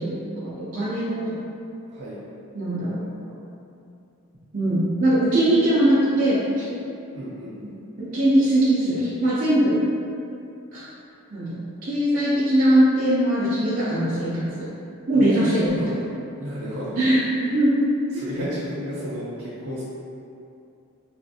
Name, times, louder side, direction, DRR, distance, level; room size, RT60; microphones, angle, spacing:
voice 1, 0.0-1.4 2.5-3.1 4.5-6.6 7.6-7.7 8.0-9.8 10.7-10.9 11.3-11.5 11.8-14.7 15.1-15.8 17.0-17.8 18.1-18.2, right 1 dB, 40° right, -11 dB, 0.5 m, -21 dB
voice 2, 7.1-7.6 15.1-15.9 16.4-17.0 18.1-19.8, equal, 85° right, -9 dB, 0.7 m, -33 dB
3.3 x 2.5 x 2.7 m, 2.6 s
head